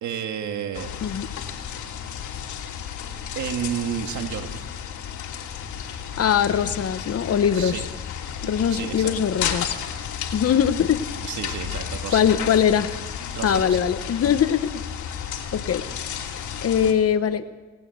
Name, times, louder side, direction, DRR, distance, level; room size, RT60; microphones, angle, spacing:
voice 1, 0.0-1.1 3.4-4.6 7.5-7.8 8.4-9.1 11.2-12.2 13.3-13.8, right 8 dB, 70° right, 6 dB, 2.1 m, -31 dB
sound 1, 0.7-16.9, left 8 dB, 75° left, 2.9 m, -33 dB
voice 2, 6.2-7.9 8.4-9.7 10.3-11.0 12.1-12.9 13.4-14.8 15.1-15.2 15.5-15.8 16.6-17.4, left 8 dB, 50° left, 10 dB, 1.2 m, -21 dB
18.5 x 18.0 x 8.1 m, 1.3 s
cardioid pair, 90°, 30 cm